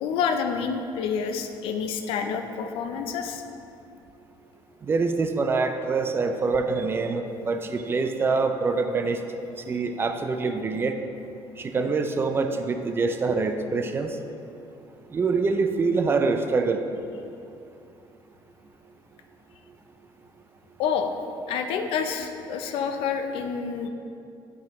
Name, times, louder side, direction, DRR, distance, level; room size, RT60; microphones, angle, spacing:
voice 1, 0.0-3.4 20.8-21.1 21.5-23.9, left 6 dB, 80° left, 6 dB, 0.5 m, -28 dB
voice 2, 4.9-9.2 9.7-10.9 11.6-14.1 15.1-16.8, right 4 dB, 25° right, 7 dB, 0.4 m, -25 dB
8.1 x 5.1 x 3.1 m, 2.6 s
cardioid pair, 135°, 9 cm